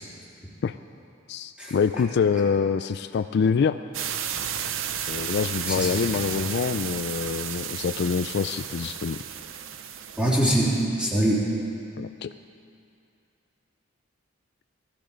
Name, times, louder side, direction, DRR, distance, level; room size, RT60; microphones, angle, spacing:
voice 1, 1.3-3.8 5.1-9.2 12.0-12.3, left 6 dB, 55° left, 11 dB, 0.3 m, -25 dB
sound 1, 3.9-10.8, right 9 dB, 80° right, 0.7 m, -33 dB
voice 2, 5.7-6.4 10.2-10.7 11.0-11.4, right 1 dB, 5° right, -7 dB, 3.4 m, -24 dB
18.0 x 13.5 x 5.1 m, 2.5 s
head